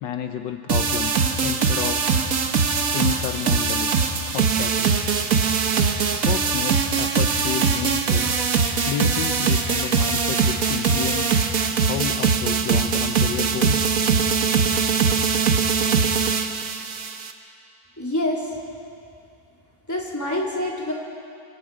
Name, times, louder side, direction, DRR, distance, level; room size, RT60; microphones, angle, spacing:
voice 1, 0.0-2.0 2.9-4.0 4.3-5.1 6.2-8.3 8.8-11.4 11.8-13.9, left 9 dB, 70° left, 7 dB, 1.3 m, -30 dB
sound 1, 0.7-17.3, right 5 dB, 50° right, 1.5 m, -21 dB
voice 2, 18.0-18.5 19.9-20.9, left 1 dB, 10° left, -3 dB, 3.4 m, -26 dB
28.5 x 27.0 x 4.9 m, 2.6 s
omnidirectional pair, 2.1 m